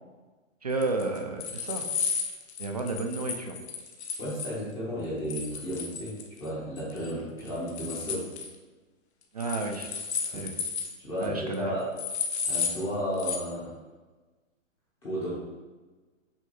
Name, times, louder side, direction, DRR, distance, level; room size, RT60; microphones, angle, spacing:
voice 1, 0.6-1.9 2.6-3.5 9.3-9.9 10.3-10.5 11.2-11.8, right 3 dB, 30° right, 3 dB, 0.4 m, -31 dB
sound 1, 0.8-4.5 5.3-6.5 6.8-7.1 7.4-8.5 9.4-10.9 11.2-11.3 11.5-11.6 12.0-12.8 13.2-13.4, left 6 dB, 55° left, 1.0 m, -33 dB
voice 2, 4.2-8.3 10.2-10.4 11.0-11.9 12.4-13.7 15.0-15.3, equal, 10° left, -7 dB, 0.7 m, -33 dB
6.2 x 3.3 x 5.3 m, 1.3 s
hypercardioid pair, 165°, 40 cm